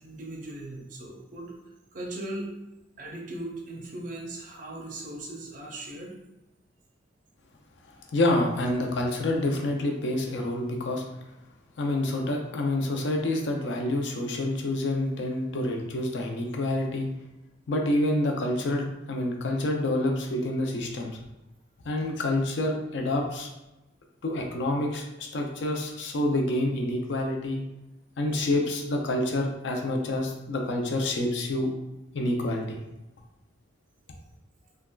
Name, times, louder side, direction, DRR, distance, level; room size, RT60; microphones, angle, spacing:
voice 1, 0.0-1.6 1.9-2.5 3.0-6.1, right 1 dB, 45° right, 0 dB, 0.5 m, -38 dB
voice 2, 8.1-11.0 11.8-17.1 17.7-21.1 21.8-23.5 24.2-27.6 28.2-31.7 32.1-32.8, left 1 dB, 70° left, 1 dB, 0.5 m, -27 dB
3.4 x 2.2 x 2.2 m, 0.95 s
head